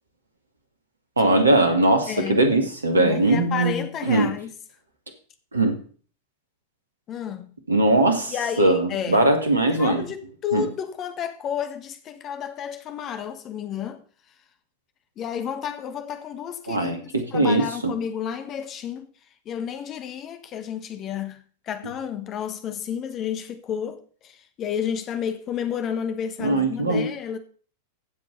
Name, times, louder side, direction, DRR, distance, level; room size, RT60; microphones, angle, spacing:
voice 1, 1.2-4.3 5.5-5.8 7.7-10.0 10.5-10.7 16.7-17.9 26.4-27.0, right 2 dB, 75° right, 2.4 m, -20 dB
voice 2, 2.1-2.4 3.0-4.5 7.1-7.5 8.3-9.3 9.8-14.0 15.2-19.1 19.4-27.4, left 8 dB, 30° left, 1.5 m, -31 dB
15.5 x 7.6 x 4.1 m
figure-of-eight pair, 90°, 0 cm